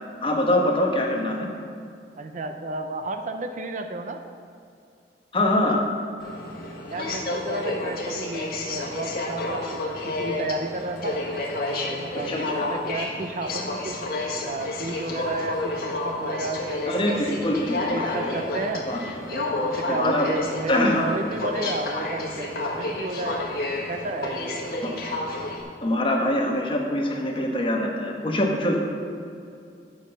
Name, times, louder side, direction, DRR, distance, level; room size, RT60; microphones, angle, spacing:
voice 1, 0.2-1.5 5.3-5.8 12.2-12.7 16.9-18.3 18.9-19.0 19.9-20.3 20.7-21.1 25.8-28.8, left 1 dB, 30° left, 1 dB, 1.2 m, -24 dB
voice 2, 2.2-4.2 6.9-11.2 11.7-14.0 14.5-17.4 17.9-18.9 19.3-23.5 23.9-24.6, right 2 dB, 45° right, 6 dB, 0.6 m, -32 dB
Aircraft, 6.2-25.6, left 2 dB, 55° left, 1.5 m, -30 dB
9.3 x 5.8 x 6.7 m, 2.4 s
head